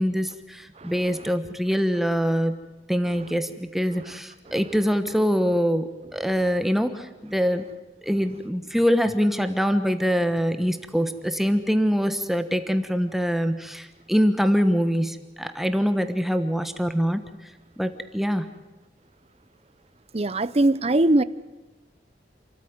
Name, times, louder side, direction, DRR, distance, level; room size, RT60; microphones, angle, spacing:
voice 1, 0.0-7.7 8.0-17.3 17.8-18.4, equal, ahead, 1.3 m, -24 dB
voice 2, 20.1-21.2, right 1 dB, 35° right, 0.7 m, -20 dB
28.0 x 14.0 x 9.5 m
head